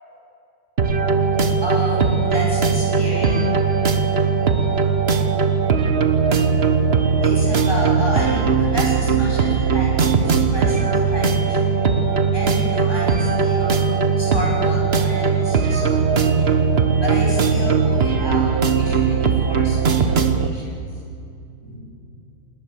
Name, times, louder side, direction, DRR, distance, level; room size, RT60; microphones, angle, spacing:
sound 1, 0.8-20.5, right 5 dB, 40° right, 1.0 m, -19 dB
voice 1, 1.6-4.0 7.2-16.6 17.0-20.8 21.6-21.8, equal, 10° left, -4 dB, 6.1 m, -31 dB
20.0 x 19.5 x 7.0 m, 2.5 s
omnidirectional pair, 2.2 m